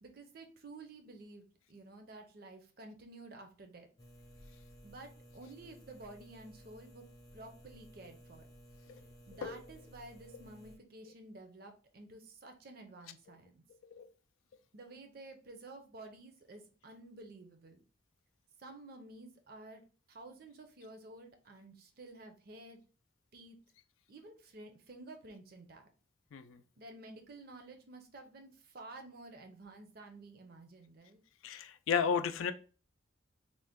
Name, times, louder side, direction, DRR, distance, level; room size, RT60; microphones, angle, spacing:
voice 1, 0.0-3.9 4.8-7.1 7.3-8.5 9.3-13.6 14.7-17.8 18.6-22.8 23.3-23.6 24.1-25.9 26.8-31.2, right 2 dB, 50° right, 6 dB, 0.5 m, -52 dB
sound 1, 4.0-10.8, equal, 20° left, 0.4 m, -57 dB
voice 2, 31.4-32.5, left 6 dB, 90° left, 9 dB, 0.4 m, -33 dB
3.7 x 2.1 x 3.5 m, 0.38 s
head